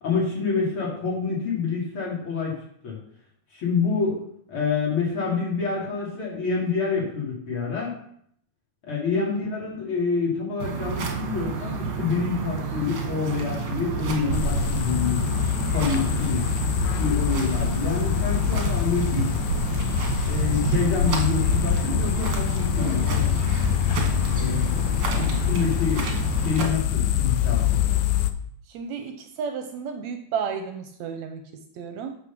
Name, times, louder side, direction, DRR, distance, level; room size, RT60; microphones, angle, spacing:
voice 1, 0.0-2.6 2.8-3.0 3.5-7.9 8.8-15.2 15.7-16.5 17.0-19.3 20.3-23.4 24.3-26.1 26.4-27.8, left 5 dB, 45° left, -4 dB, 3.6 m, -27 dB
sound 1, 10.6-26.6, right 6 dB, 50° right, 2.0 m, -30 dB
sound 2, 14.3-28.3, left 9 dB, 90° left, 2.2 m, -25 dB
voice 2, 28.7-32.2, right 6 dB, 75° right, 6 dB, 1.9 m, -33 dB
8.5 x 5.9 x 6.1 m, 0.68 s
omnidirectional pair, 3.4 m